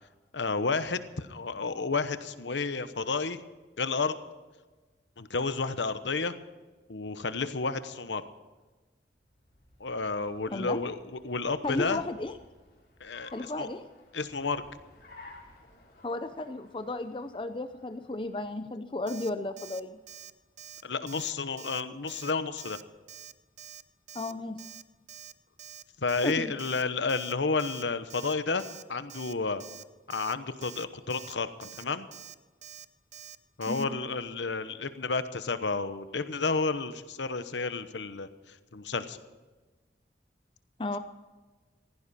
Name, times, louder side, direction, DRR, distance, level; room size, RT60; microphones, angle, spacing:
voice 1, 0.3-3.4 3.8-4.1 5.2-6.4 6.9-8.2 9.8-12.0 13.0-13.3 13.6-13.7 14.1-14.6 20.8-22.8 26.0-29.6 30.1-32.1 33.6-39.2, left 4 dB, 90° left, 12 dB, 1.0 m, -31 dB
Car, 9.2-18.7, left 2 dB, 55° left, 4.0 m, -56 dB
voice 2, 10.5-10.8 11.6-12.3 13.3-13.8 16.0-20.0 24.1-24.6 26.2-26.5 33.7-33.9 40.8-41.0, left 2 dB, 30° left, 10 dB, 0.6 m, -34 dB
Alarm, 19.1-19.3 19.6-19.8 20.1-20.3 20.6-20.8 21.1-21.3 21.6-21.8 22.1-22.3 22.6-22.8 23.1-23.3 23.6-23.8 24.1-24.3 24.6-24.8 25.1-25.3 25.6-25.8 26.1-26.3 26.6-26.8 27.1-27.3 27.6-27.8 28.1-28.3 28.6-28.8 29.1-29.3 29.6-29.8 30.1-30.3 30.6-30.8 31.1-31.3 31.6-31.8 32.1-32.3 32.6-32.9 33.1-33.4 33.6-33.8, right 9 dB, 40° right, 0.7 m, -46 dB
16.5 x 15.5 x 4.3 m, 1.3 s
head